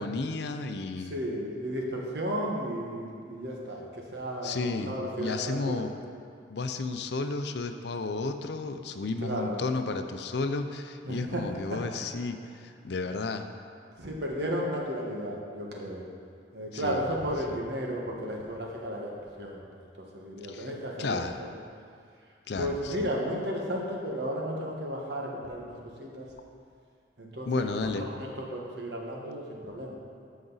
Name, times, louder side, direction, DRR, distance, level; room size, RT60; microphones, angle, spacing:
voice 1, 0.0-1.2 4.4-5.9 6.5-13.5 16.7-17.0 20.5-20.7 21.0-21.4 22.5-23.1 27.5-28.1, left 3 dB, 65° left, 8 dB, 0.5 m, -32 dB
voice 2, 1.0-5.8 9.2-9.6 11.0-11.4 14.0-16.0 16.5-19.6 20.0-21.5 22.6-26.3 27.2-30.0, equal, 65° right, -1 dB, 1.4 m, -34 dB
13.5 x 5.2 x 4.0 m, 2.3 s
head